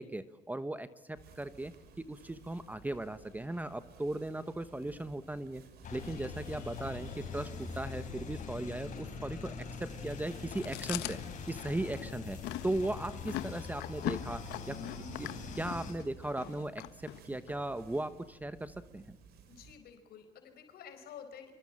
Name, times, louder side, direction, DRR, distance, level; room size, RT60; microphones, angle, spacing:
voice 1, 0.0-5.6 5.9-11.2 11.5-12.4 12.6-14.8 15.2-15.3 15.5-19.0, right 1 dB, 10° right, 12 dB, 1.1 m, -37 dB
sound 1, 1.1-19.8, right 5 dB, 70° right, 5.1 m, -57 dB
sound 2, 5.8-15.9, left 5 dB, 45° left, 7.6 m, -43 dB
voice 2, 6.0-6.4 19.5-21.5, left 8 dB, 65° left, 7 dB, 4.6 m, -51 dB
Chewing mastication, 10.5-17.6, left 14 dB, 85° left, 1.3 m, -41 dB
26.5 x 23.5 x 8.8 m, 0.96 s
cardioid pair, 110°, 17 cm